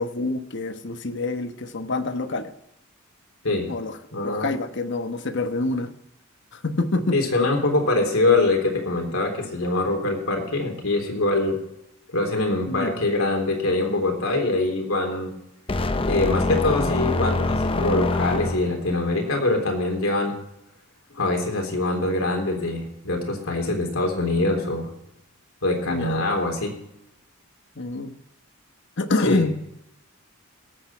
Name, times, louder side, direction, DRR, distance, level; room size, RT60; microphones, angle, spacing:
voice 1, 0.0-2.5 3.7-4.0 4.2-5.9 6.5-7.2 12.7-13.0 25.9-26.2 27.8-28.1 29.0-29.6, left 2 dB, 55° left, 9 dB, 1.1 m, -26 dB
voice 2, 4.1-4.5 7.1-11.6 12.1-15.3 16.1-20.4 21.1-24.9 25.6-26.7 29.2-29.5, left 2 dB, 80° left, 2 dB, 3.6 m, -24 dB
sound 1, 15.7-18.9, left 2 dB, 25° left, 0.6 m, -24 dB
19.0 x 8.1 x 4.5 m, 0.84 s
head